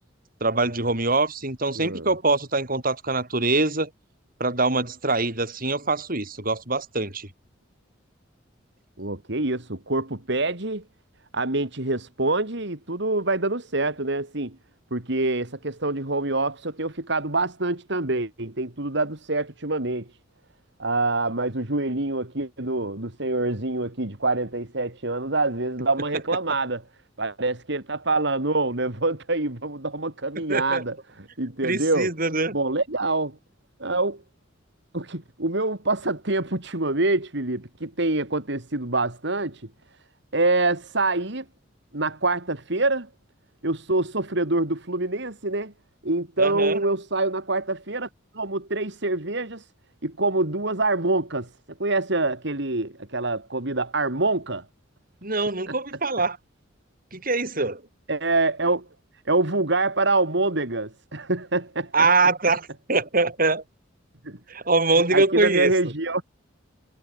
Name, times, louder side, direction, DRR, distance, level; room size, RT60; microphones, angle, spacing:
voice 1, 0.4-3.9 4.4-7.3 30.5-30.8 31.6-32.5 46.4-46.8 55.2-56.4 57.1-57.8 61.9-63.6 64.5-65.7, right 3 dB, 45° right, 6.6 m, -23 dB
voice 2, 1.7-2.1 9.0-10.8 11.3-14.6 14.9-20.1 20.8-26.8 27.2-32.1 32.5-33.4 33.8-34.2 34.9-39.7 40.3-41.4 41.9-43.1 43.6-45.7 46.0-48.1 48.3-49.7 50.0-51.5 51.8-54.6 55.7-55.8 58.1-58.8 59.3-61.9 64.2-64.4 65.1-66.2, right 2 dB, 65° right, 3.0 m, -25 dB
head